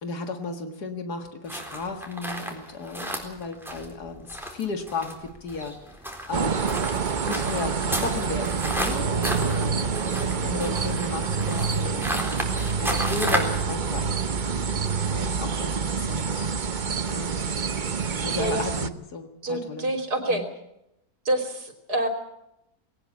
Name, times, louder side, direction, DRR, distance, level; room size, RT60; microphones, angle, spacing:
voice 1, 0.0-6.0 6.3-6.9 7.2-10.2 10.4-14.3 15.1-16.5 17.1-17.8 18.2-19.9 20.3-20.5, left 3 dB, 85° left, 6 dB, 2.3 m, -35 dB
sound 1, 1.5-13.6, equal, ahead, 3.9 m, -33 dB
sound 2, 6.3-18.9, right 5 dB, 35° right, 0.9 m, -27 dB
voice 2, 19.4-20.4 21.3-22.1, right 1 dB, 85° right, 5 dB, 3.7 m, -27 dB
20.0 x 18.5 x 8.4 m, 0.84 s
omnidirectional pair, 1.7 m